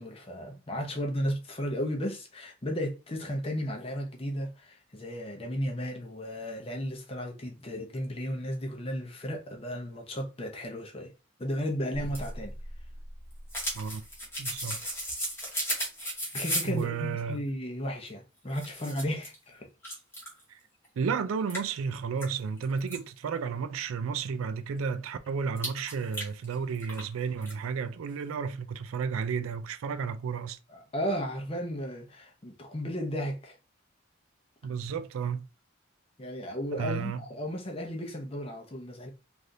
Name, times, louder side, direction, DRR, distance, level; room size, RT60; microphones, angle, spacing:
voice 1, 0.0-11.1 11.4-12.5 16.3-19.7 30.7-33.6 36.2-39.1, equal, 30° left, 0.6 m, -34 dB
sound 1, 11.9-16.8 18.1-18.2 18.5-19.3 19.8-20.4 20.8-20.9 21.5-23.0 25.6-27.1 27.4-27.5, equal, 10° left, 1.0 m, -35 dB
voice 2, 14.4-14.8 16.6-17.4 20.5-20.6 21.0-30.6 34.6-35.5 36.7-37.2, right 6 dB, 85° right, 0.3 m, -32 dB
3.2 x 2.5 x 2.6 m
head